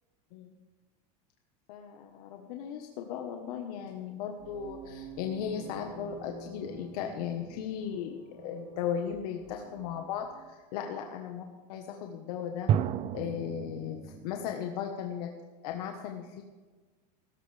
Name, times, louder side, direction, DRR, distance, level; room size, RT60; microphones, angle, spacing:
voice 1, 1.7-11.4 11.7-12.7 13.1-15.3 15.6-16.4, left 8 dB, 65° left, 3 dB, 1.4 m, -36 dB
sound 1, 4.4-10.5, right 3 dB, 75° right, 4.5 m, -49 dB
sound 2, 6.6-8.0 12.7-14.5, right 10 dB, 30° right, 0.4 m, -33 dB
16.0 x 14.0 x 3.5 m, 1.4 s
supercardioid pair, 150°, 21 cm